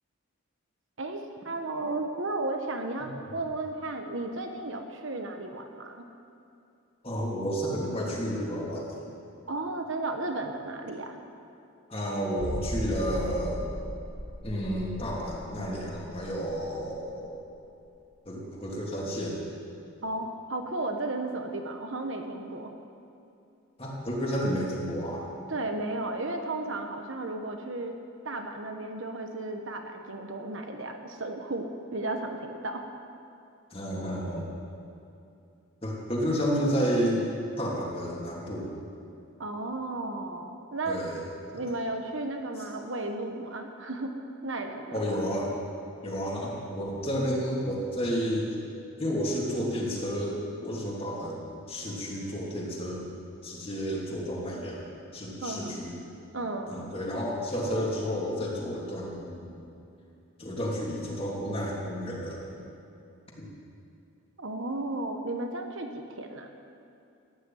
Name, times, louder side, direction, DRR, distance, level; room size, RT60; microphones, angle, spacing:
voice 1, 1.0-6.1 9.5-11.2 20.0-22.7 25.5-27.9 28.2-32.8 39.4-41.0 41.5-44.1 44.4-45.2 55.4-55.8 56.3-56.8 64.4-66.5, right 2 dB, 55° right, 4 dB, 1.2 m, -34 dB
voice 2, 7.0-9.0 11.9-13.6 14.4-17.4 18.2-19.4 23.8-25.3 33.7-34.5 35.8-37.2 37.6-38.8 40.9-41.2 41.5-41.6 44.9-45.5 46.0-48.5 49.0-53.1 53.4-56.0 56.7-59.7 60.4-62.4 63.4-63.5, equal, 25° left, -3 dB, 2.9 m, -31 dB
sound 1, 12.4-17.8 18.1-18.2 18.7-18.8, equal, 10° right, 2.3 m, -38 dB
15.0 x 10.0 x 9.3 m, 2.6 s
head